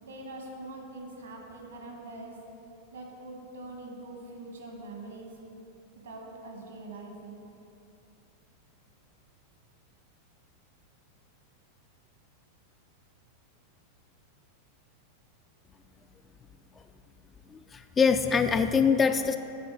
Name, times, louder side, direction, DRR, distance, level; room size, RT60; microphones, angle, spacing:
voice 1, 0.0-2.4 2.9-5.3 6.0-7.4, right 2 dB, 70° right, 1 dB, 1.3 m, -43 dB
voice 2, 17.5-19.4, left 6 dB, 20° left, 8 dB, 0.3 m, -24 dB
8.3 x 4.3 x 6.0 m, 2.8 s
figure-of-eight pair, 90°, 0 cm